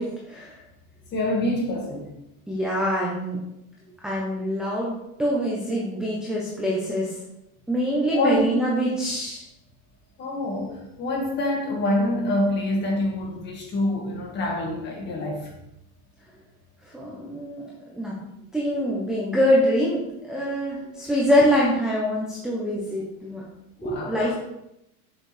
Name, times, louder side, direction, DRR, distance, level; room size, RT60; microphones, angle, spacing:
voice 1, 0.3-0.6 2.5-3.4 4.0-4.9 5.2-7.1 7.7-9.4 16.9-18.1 18.5-23.4 23.8-24.3, equal, ahead, -5 dB, 0.7 m, -24 dB
voice 2, 1.1-2.1 8.1-8.4 10.2-15.5 23.8-24.3, left 1 dB, 25° left, 0 dB, 1.7 m, -26 dB
6.6 x 6.5 x 3.3 m, 0.86 s
supercardioid pair, 160°, 43 cm